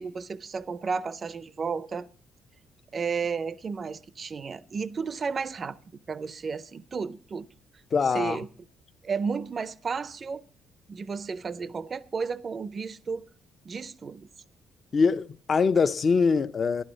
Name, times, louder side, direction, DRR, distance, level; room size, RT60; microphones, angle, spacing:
voice 1, 0.0-2.1 2.9-5.8 6.1-7.5 8.1-8.5 9.0-10.4 10.9-13.2 13.6-14.3, right 5 dB, 30° right, 0.5 m, -32 dB
voice 2, 7.9-8.4 14.9-16.8, left 5 dB, 35° left, 0.5 m, -23 dB
12.0 x 11.5 x 5.1 m
cardioid pair, 140°, 0 cm